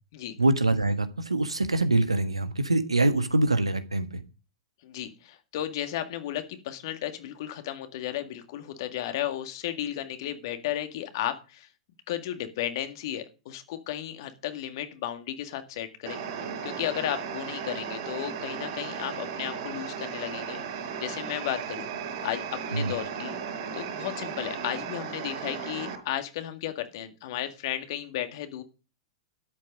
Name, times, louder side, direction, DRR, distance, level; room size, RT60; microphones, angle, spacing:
voice 1, 0.4-4.2 22.7-22.9, right 2 dB, 80° right, 10 dB, 1.4 m, -24 dB
voice 2, 4.8-11.7 12.1-21.9 22.2-23.4 23.7-28.6, left 12 dB, 50° left, 8 dB, 1.9 m, -34 dB
sound 1, 16.1-26.0, right 6 dB, 50° right, 5.0 m, -36 dB
12.5 x 8.4 x 5.4 m, 0.34 s
figure-of-eight pair, 100°, 3 cm